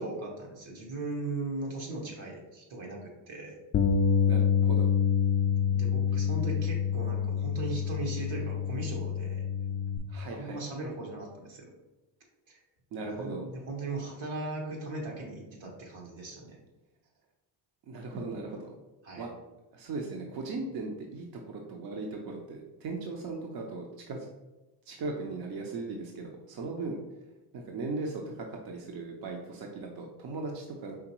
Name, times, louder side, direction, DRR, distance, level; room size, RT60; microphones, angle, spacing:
voice 1, 0.0-3.5 5.4-9.4 10.3-11.7 12.5-12.6 13.0-16.6 19.0-19.2, right 2 dB, 75° right, -1 dB, 1.5 m, -38 dB
Bass guitar, 3.7-10.0, left 7 dB, 35° left, 0.4 m, -27 dB
voice 2, 4.3-4.9 10.1-10.6 12.9-13.4 17.9-18.8 19.2-19.3 19.7-24.3 24.9-27.0 27.5-31.0, right 3 dB, 50° right, 1 dB, 0.7 m, -38 dB
4.9 x 3.2 x 3.0 m, 1.1 s
cardioid pair, 95°, 47 cm